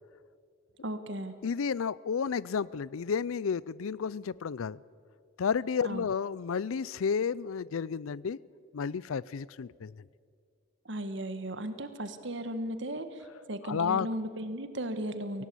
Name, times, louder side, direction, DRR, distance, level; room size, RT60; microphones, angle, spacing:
voice 1, 0.8-1.3 5.8-6.0 10.8-15.5, right 1 dB, 60° right, 10 dB, 1.5 m, -36 dB
voice 2, 1.4-4.8 5.4-8.4 8.7-10.0 13.6-14.1, left 6 dB, 85° left, 22 dB, 0.4 m, -31 dB
24.0 x 17.5 x 8.4 m, 2.3 s
head